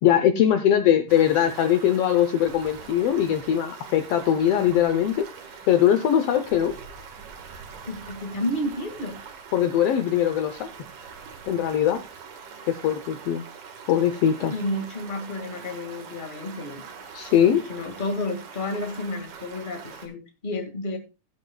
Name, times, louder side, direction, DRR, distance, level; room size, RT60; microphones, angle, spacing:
voice 1, 0.0-5.3 5.7-6.7 9.5-10.7 11.5-12.0 12.7-13.4 13.9-14.5 17.1-17.6, left 10 dB, 85° left, 8 dB, 1.3 m, -21 dB
Stream, 1.1-20.1, right 6 dB, 75° right, 3.1 m, -43 dB
voice 2, 7.8-9.2 14.5-16.8 17.3-21.0, left 1 dB, 20° left, 4 dB, 1.4 m, -31 dB
16.0 x 8.6 x 2.3 m, 0.26 s
omnidirectional pair, 3.7 m